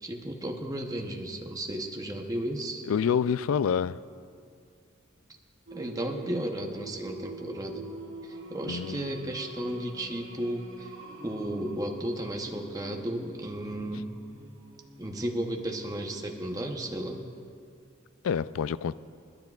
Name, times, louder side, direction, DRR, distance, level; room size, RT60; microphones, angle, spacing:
voice 1, 0.0-2.8 5.7-7.9 8.2-10.9 11.2-14.1 15.0-17.2, right 1 dB, 20° right, 0.8 m, -34 dB
voice 2, 2.9-4.0 8.7-9.3 18.2-18.9, left 7 dB, 85° left, 0.3 m, -27 dB
Singing, 5.7-17.4, right 2 dB, 75° right, 2.1 m, -46 dB
30.0 x 10.5 x 2.4 m
head